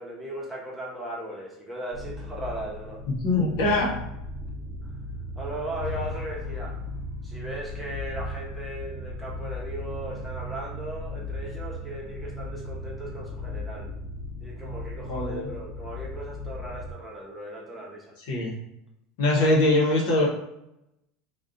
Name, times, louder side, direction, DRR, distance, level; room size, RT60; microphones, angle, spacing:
voice 1, 0.0-3.0 5.4-6.8 7.2-13.9 14.4-18.1 19.4-19.5, right 1 dB, 10° right, -3 dB, 0.9 m, -37 dB
sound 1, 1.9-16.9, left 1 dB, 45° right, 0.7 m, -37 dB
voice 2, 3.2-3.9 15.1-15.5 18.3-18.5 19.2-20.3, left 2 dB, 70° left, -2 dB, 0.8 m, -22 dB
sound 2, 5.7-9.6, left 3 dB, 45° left, 1.4 m, -41 dB
2.4 x 2.2 x 2.5 m, 0.83 s
hypercardioid pair, 90°, 0 cm